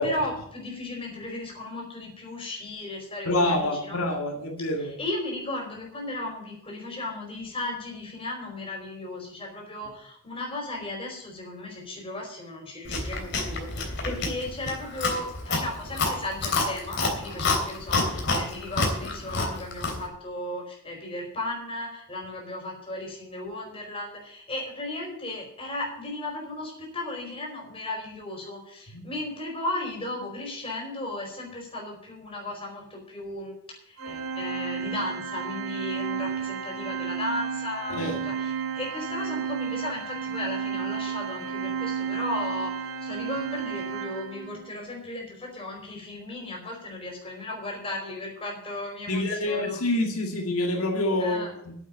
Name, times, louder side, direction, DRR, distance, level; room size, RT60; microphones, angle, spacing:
voice 1, 0.0-4.0 4.8-49.8 51.2-51.5, left 1 dB, 25° left, 0 dB, 4.6 m, -35 dB
voice 2, 3.3-4.9 14.1-14.2 28.9-29.1 37.9-38.1 49.1-51.7, left 1 dB, 85° left, 2 dB, 2.2 m, -27 dB
Chewing mastication, 12.9-20.1, left 3 dB, 50° left, 3.1 m, -28 dB
Organ, 34.0-44.7, right 6 dB, 70° right, 1.2 m, -32 dB
9.4 x 8.3 x 8.9 m, 0.69 s
head